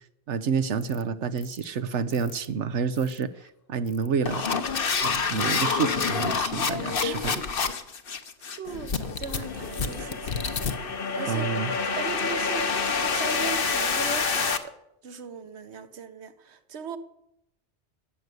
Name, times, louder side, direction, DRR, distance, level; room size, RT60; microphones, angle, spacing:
voice 1, 0.3-3.3 3.7-4.4 5.0-7.4 11.3-11.7, right 6 dB, 90° right, 1.2 m, -28 dB
sound 1, 0.8-1.0 1.4-1.6 2.1-2.5 3.0-3.2 3.9-14.6, left 5 dB, 55° left, 1.2 m, -27 dB
voice 2, 8.6-10.4 10.7-11.5 11.8-14.7 15.0-17.0, right 6 dB, 70° right, 1.3 m, -38 dB
14.0 x 8.2 x 9.3 m
omnidirectional pair, 1.2 m